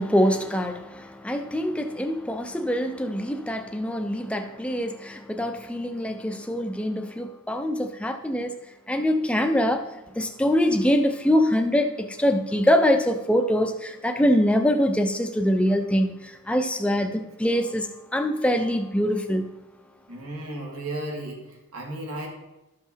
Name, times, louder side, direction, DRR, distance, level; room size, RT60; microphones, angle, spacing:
voice 1, 0.0-8.5 8.9-9.8 10.2-19.5, equal, 5° left, 0.6 m, -24 dB
voice 2, 20.1-22.3, right 1 dB, 80° right, 2.2 m, -34 dB
12.5 x 5.6 x 4.5 m
head